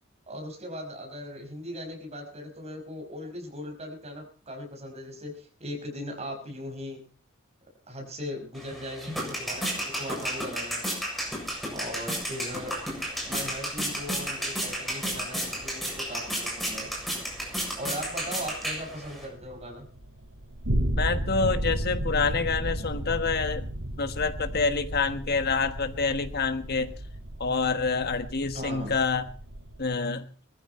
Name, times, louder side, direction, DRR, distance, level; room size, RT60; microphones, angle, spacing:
voice 1, 0.3-7.0 7.9-10.8 11.7-12.8 13.2-16.9 17.8-19.9 28.5-29.0, equal, 30° right, 3 dB, 5.5 m, -38 dB
sound 1, 8.6-19.3, equal, ahead, 7.4 m, -33 dB
sound 2, 11.3-29.8, right 1 dB, 85° right, 3.2 m, -35 dB
voice 2, 21.0-23.7 24.0-26.9 27.4-29.3 29.8-30.2, left 4 dB, 50° left, 10 dB, 1.5 m, -27 dB
21.5 x 14.5 x 4.4 m, 0.39 s
head